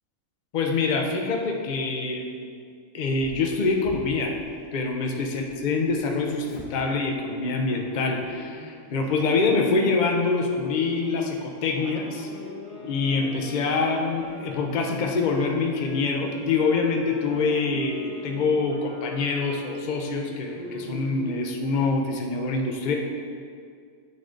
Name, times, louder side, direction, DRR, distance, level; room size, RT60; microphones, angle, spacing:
voice 1, 0.5-2.4 2.9-4.4 4.7-12.5 12.8-22.9, left 4 dB, 50° left, 2 dB, 0.6 m, -25 dB
Dog, 3.2-5.5 5.8-9.1 9.5-9.8 10.6-13.7 14.1-14.8 15.2-15.6 16.0-17.3 17.7-17.9 18.5-18.6 19.0-19.1 19.7-22.0, equal, 25° left, 0.9 m, -44 dB
Wind instrument woodwind instrument, 11.8-20.1, left 1 dB, 75° left, 2.0 m, -44 dB
9.5 x 3.8 x 3.8 m, 2.2 s
omnidirectional pair, 1.6 m